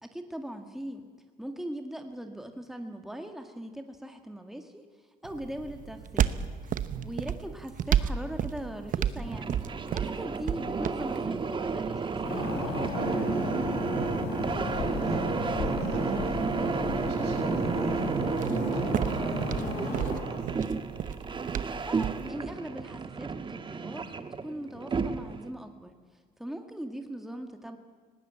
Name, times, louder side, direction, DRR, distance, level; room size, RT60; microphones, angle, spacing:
voice 1, 0.0-1.0 1.4-4.8 5.2-6.4 7.0-9.6 9.9-13.5 21.9-24.1 24.4-25.9 26.4-27.8, equal, ahead, 5 dB, 1.9 m, -40 dB
sound 1, 5.2-22.3, right 9 dB, 50° right, 0.9 m, -35 dB
sound 2, 9.1-25.5, right 5 dB, 30° right, 1.3 m, -32 dB
sound 3, 12.2-20.2, left 3 dB, 80° left, 6.4 m, -34 dB
voice 2, 13.9-14.4 14.6-20.6, right 6 dB, 90° right, 3 dB, 5.9 m, -38 dB
19.0 x 18.0 x 9.0 m, 1.5 s
cardioid pair, 110°, 17 cm